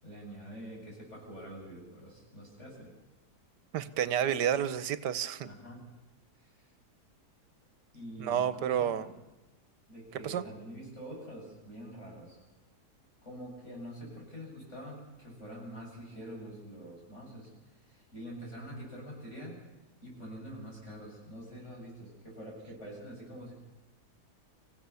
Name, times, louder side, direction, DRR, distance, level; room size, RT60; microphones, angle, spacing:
voice 1, 0.0-2.9 5.4-5.8 6.4-6.7 7.9-9.1 9.9-12.4 13.2-17.5 17.8-19.6 20.0-23.5, equal, 40° left, -3 dB, 7.8 m, -46 dB
voice 2, 3.7-5.5 8.2-9.1 10.1-10.4, right 9 dB, 85° right, 14 dB, 1.5 m, -30 dB
26.0 x 15.5 x 7.0 m, 1.1 s
omnidirectional pair, 1.8 m